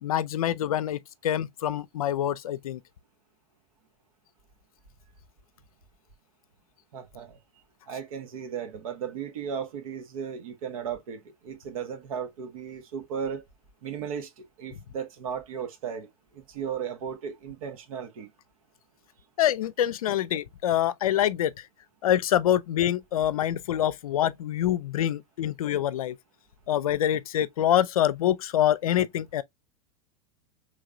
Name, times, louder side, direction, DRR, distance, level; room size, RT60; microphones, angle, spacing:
voice 1, 0.0-2.8 19.4-21.5 22.0-26.2 26.7-29.4, left 11 dB, 75° left, 0.5 m, -25 dB
voice 2, 6.9-7.4 7.9-13.4 13.8-16.1 16.3-18.3, right 7 dB, 70° right, 1.2 m, -35 dB
3.6 x 3.3 x 2.4 m
hypercardioid pair, 90°, 18 cm